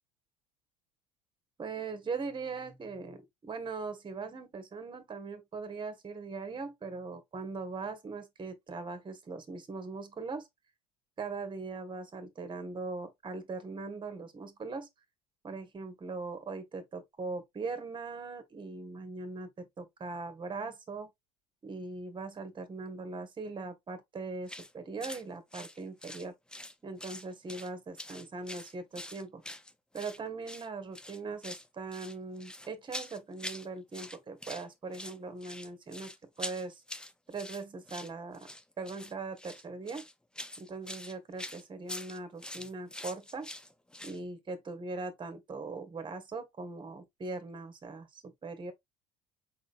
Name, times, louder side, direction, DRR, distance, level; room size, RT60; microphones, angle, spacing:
voice 1, 1.6-10.5 11.2-14.9 15.4-21.1 21.6-26.3 26.8-29.4 29.9-36.8 37.3-38.5 38.8-40.0 40.6-43.5 44.0-48.7, right 3 dB, 25° right, 1.5 m, -40 dB
sound 1, 24.5-24.7 25.0-25.2 25.5-26.7 27.0-27.7 28.0-30.2 30.5-30.7 31.0-31.7 31.9-33.7 33.9-34.7 34.9-44.2, left 1 dB, 5° left, 0.6 m, -44 dB
4.9 x 3.9 x 2.5 m
hypercardioid pair, 70°, 18 cm